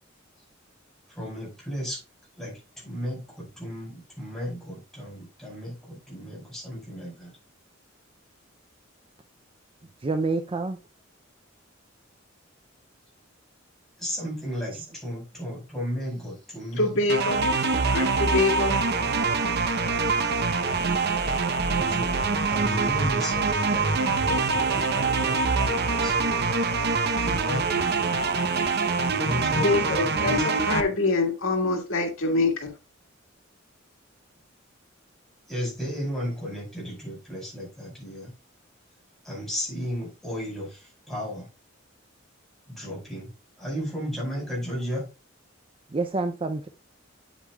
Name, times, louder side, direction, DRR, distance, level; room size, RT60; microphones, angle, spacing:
voice 1, 1.1-2.0 2.4-7.4 14.0-17.2 21.7-22.1 22.5-26.5 27.2-28.2 29.1-30.8 35.5-38.3 39.2-41.5 42.7-45.1, equal, ahead, 5.1 m, -34 dB
voice 2, 10.0-10.8 14.7-14.9 45.9-46.7, right 3 dB, 30° right, 0.5 m, -28 dB
voice 3, 16.8-17.5 17.9-18.8 29.5-32.7, left 3 dB, 85° left, 1.9 m, -25 dB
sound 1, 17.1-30.8, right 4 dB, 55° right, 0.8 m, -24 dB
8.8 x 8.1 x 2.3 m
head